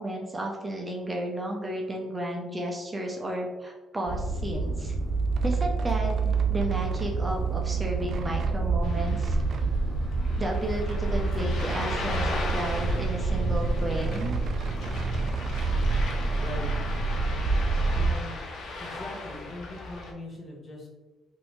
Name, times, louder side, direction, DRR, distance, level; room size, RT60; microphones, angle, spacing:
voice 1, 0.0-4.9 5.4-9.4 10.4-14.4, right 1 dB, 20° right, 0 dB, 0.6 m, -33 dB
sound 1, 4.0-18.1, right 3 dB, 85° right, 0.7 m, -27 dB
sound 2, 5.2-7.2 7.5-8.6 9.2-9.7 10.1-10.2 10.4-12.3 12.6-13.5 13.8-16.2, right 4 dB, 60° right, 0.4 m, -45 dB
Ocean, 8.8-20.1, left 2 dB, 75° left, 0.6 m, -38 dB
voice 2, 16.4-16.8 17.8-18.4 18.7-20.9, left 2 dB, 40° left, -1 dB, 0.9 m, -40 dB
3.1 x 2.6 x 3.1 m, 1.1 s
cardioid pair, 90°, 0 cm